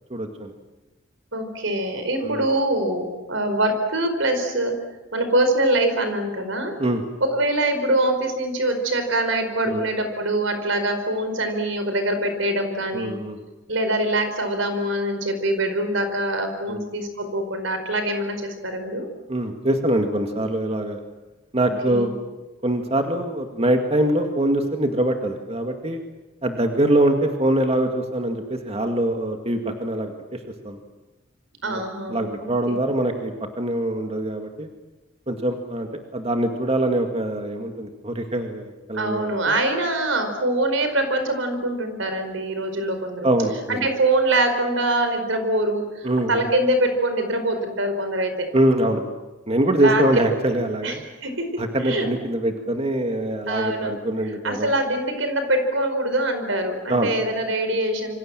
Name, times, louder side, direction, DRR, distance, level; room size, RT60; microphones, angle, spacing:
voice 1, 0.1-0.5 2.2-2.4 6.8-7.0 9.6-9.8 12.9-13.4 16.7-16.8 19.3-21.0 21.5-22.1 22.6-26.0 26.4-30.4 30.6-30.8 31.6-31.8 32.1-34.7 35.3-39.5 43.2-43.9 46.0-46.5 48.5-49.0 49.5-51.0 51.6-54.7 56.9-57.1, right 1 dB, 30° right, 4 dB, 2.1 m, -23 dB
voice 2, 1.3-4.8 5.1-6.8 7.2-13.2 13.7-19.1 21.6-22.1 31.6-32.7 38.9-43.3 43.7-48.5 49.8-50.0 50.8-51.5 51.8-52.1 53.5-53.9 54.4-58.2, right 1 dB, 80° right, 7 dB, 4.9 m, -24 dB
27.0 x 25.0 x 7.6 m, 1.1 s
head